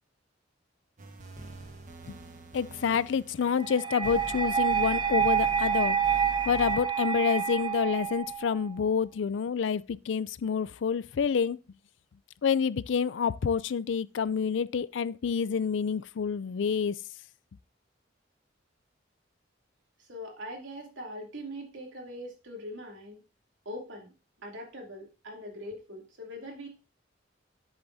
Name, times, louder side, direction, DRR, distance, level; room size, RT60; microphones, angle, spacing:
sound 1, 1.0-6.8, right 1 dB, 45° right, 1.1 m, -45 dB
voice 1, 2.5-6.0 6.5-11.6 12.4-16.9, left 6 dB, 75° left, 0.4 m, -28 dB
sound 2, 3.6-8.6, right 7 dB, 25° right, 0.6 m, -28 dB
voice 2, 20.0-23.2 23.6-24.1 24.4-26.7, equal, 85° right, 2.8 m, -42 dB
10.5 x 8.0 x 2.7 m
head